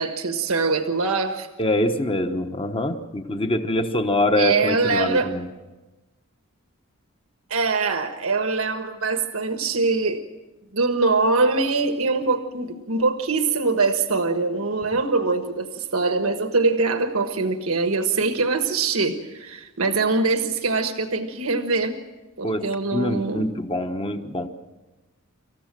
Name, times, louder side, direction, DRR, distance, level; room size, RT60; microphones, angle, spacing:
voice 1, 0.0-1.5 4.4-5.3 7.5-10.2 10.7-22.0 22.4-23.5, right 3 dB, 80° right, 7 dB, 1.5 m, -23 dB
voice 2, 1.6-5.5 22.4-22.7 22.9-24.5, left 1 dB, 25° left, 7 dB, 1.2 m, -24 dB
26.5 x 15.0 x 7.6 m, 1.1 s
head